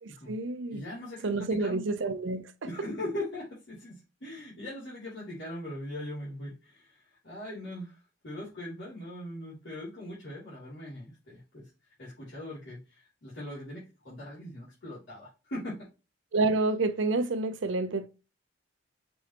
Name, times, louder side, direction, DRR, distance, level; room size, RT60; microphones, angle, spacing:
voice 1, 0.0-0.8 1.2-2.5 16.3-18.1, right 3 dB, 70° right, 0.6 m, -29 dB
voice 2, 0.7-1.8 2.7-8.0 8.2-11.7 12.0-15.9, left 1 dB, 65° left, 2.7 m, -40 dB
5.3 x 3.3 x 2.9 m
head